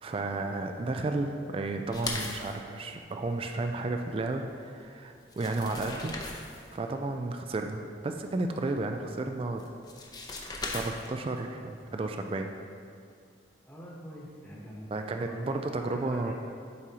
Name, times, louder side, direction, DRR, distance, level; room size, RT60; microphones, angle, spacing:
voice 1, 0.0-6.1 6.7-9.6 10.7-12.5 14.9-16.3, right 2 dB, 30° right, 5 dB, 0.3 m, -32 dB
sound 1, 1.9-2.6 4.8-4.9 5.2-6.7 9.6-11.3, left 3 dB, 20° left, 0.6 m, -38 dB
voice 2, 13.6-16.3, equal, 5° left, -7 dB, 1.1 m, -43 dB
11.0 x 4.8 x 2.8 m, 2.4 s
head